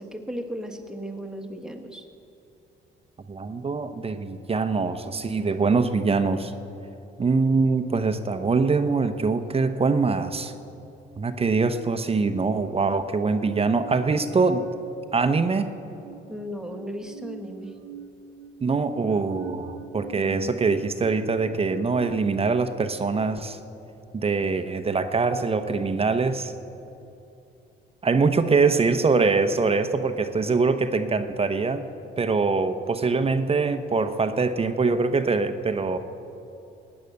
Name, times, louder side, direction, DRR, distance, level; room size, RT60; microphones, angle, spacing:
voice 1, 0.0-2.0 16.3-17.7 20.2-20.5, equal, 5° right, 3 dB, 1.5 m, -35 dB
voice 2, 3.3-6.5 7.2-10.5 11.2-14.6 15.1-15.7 18.6-23.6 24.1-26.5 28.0-31.9 32.2-36.0, right 4 dB, 30° right, 9 dB, 0.8 m, -23 dB
sound 1, 13.4-15.5 15.8-22.2, right 7 dB, 70° right, 0.6 m, -43 dB
17.5 x 9.7 x 6.6 m, 2.8 s
cardioid pair, 90°, 20 cm